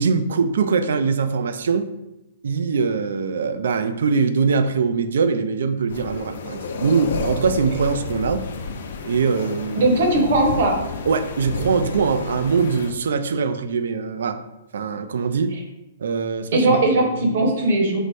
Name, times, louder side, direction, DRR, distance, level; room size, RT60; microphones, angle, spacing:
voice 1, 0.0-1.9 2.4-8.4 9.0-10.1 11.1-14.4 14.7-15.5 16.0-17.1 17.4-17.5, right 5 dB, 80° right, 10 dB, 0.4 m, -22 dB
sound 1, 5.9-12.9, left 4 dB, 65° left, 0.4 m, -31 dB
voice 2, 9.8-10.8 16.5-18.0, right 2 dB, 55° right, 2 dB, 1.0 m, -18 dB
4.7 x 2.1 x 4.1 m, 0.92 s
hypercardioid pair, 170°, 0 cm